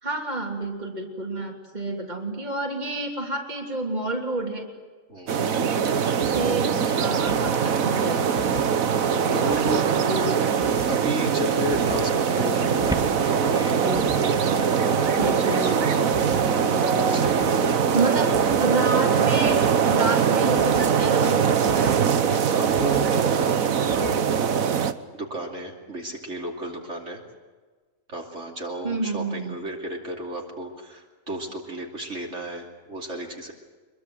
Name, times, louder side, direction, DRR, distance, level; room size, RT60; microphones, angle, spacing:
voice 1, 0.0-4.7 5.3-8.4 9.3-9.8 10.1-10.5 15.2-16.1 17.9-22.2 28.8-29.6, right 2 dB, 30° right, 1 dB, 3.3 m, -30 dB
voice 2, 5.1-5.6 9.3-9.8 10.3-10.4 10.9-13.7 15.8-16.1 16.7-17.6 18.2-18.4 22.5-24.5 24.8-27.2 28.1-33.5, right 1 dB, 55° right, 0 dB, 3.2 m, -33 dB
sound 1, 5.3-24.9, right 7 dB, 80° right, 1.5 m, -22 dB
sound 2, 6.2-24.6, left 2 dB, 45° left, 3.1 m, -42 dB
sound 3, 6.5-18.2, right 1 dB, 5° right, 2.0 m, -35 dB
25.5 x 22.5 x 7.9 m, 1.4 s
omnidirectional pair, 1.4 m